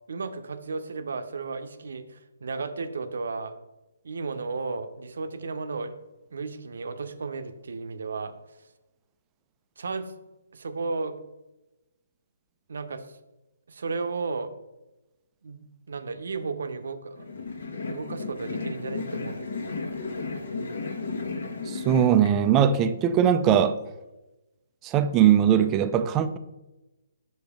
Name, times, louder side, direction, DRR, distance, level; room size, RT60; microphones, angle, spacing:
voice 1, 0.1-3.5 4.0-5.9 6.3-8.3 9.8-10.1 10.5-11.2 12.7-13.2 13.7-14.5 15.4-17.2 17.9-19.6, right 4 dB, 70° right, 0.7 m, -34 dB
sound 1, 17.2-22.3, left 4 dB, 70° left, 1.3 m, -34 dB
voice 2, 21.7-23.8 24.8-26.4, right 9 dB, 20° right, 0.3 m, -20 dB
6.0 x 5.2 x 3.5 m
hypercardioid pair, 160°, 0 cm